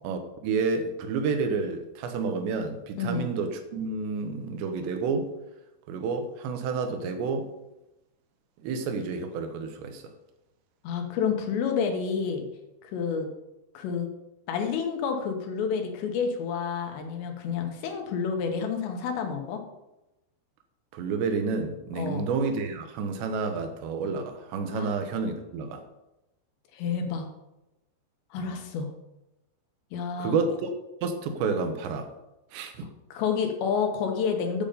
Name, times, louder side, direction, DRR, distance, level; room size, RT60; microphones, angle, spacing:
voice 1, 0.0-5.3 5.9-7.5 8.6-10.1 20.9-25.8 28.4-28.5 30.2-30.7 31.0-32.1 32.5-32.9, right 4 dB, 80° right, 7 dB, 3.1 m, -30 dB
voice 2, 3.0-3.3 10.8-12.5 12.8-13.3 13.7-14.1 14.5-19.6 21.9-22.3 24.7-24.9 26.7-27.3 28.3-28.9 29.9-30.4 33.1-34.6, left 6 dB, 80° left, 4 dB, 3.3 m, -29 dB
8.9 x 7.1 x 5.1 m, 0.95 s
omnidirectional pair, 5.1 m